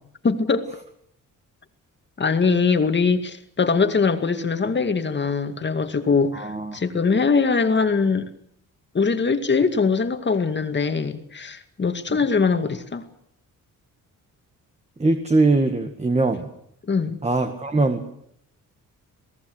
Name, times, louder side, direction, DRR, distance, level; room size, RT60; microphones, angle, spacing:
voice 1, 0.2-0.7 2.2-8.3 8.9-13.0 16.9-17.2, left 4 dB, 35° left, 2.2 m, -22 dB
voice 2, 6.3-6.8 15.0-16.5 17.2-18.1, right 3 dB, 20° right, 1.9 m, -21 dB
28.0 x 18.5 x 7.9 m
cardioid pair, 120°, 33 cm